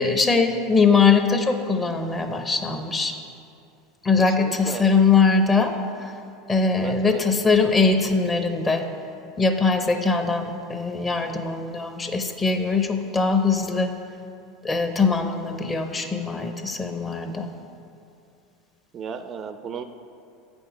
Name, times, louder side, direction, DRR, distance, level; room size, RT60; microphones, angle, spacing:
voice 1, 0.0-3.1 4.0-5.7 6.0-6.1 6.5-8.8 9.4-13.9 14.6-17.5, left 4 dB, 20° left, 6 dB, 0.7 m, -21 dB
voice 2, 4.2-4.9 6.7-7.2 18.9-19.8, right 7 dB, 40° right, 9 dB, 0.4 m, -34 dB
8.5 x 5.3 x 4.8 m, 2.5 s
supercardioid pair, 105°, 0 cm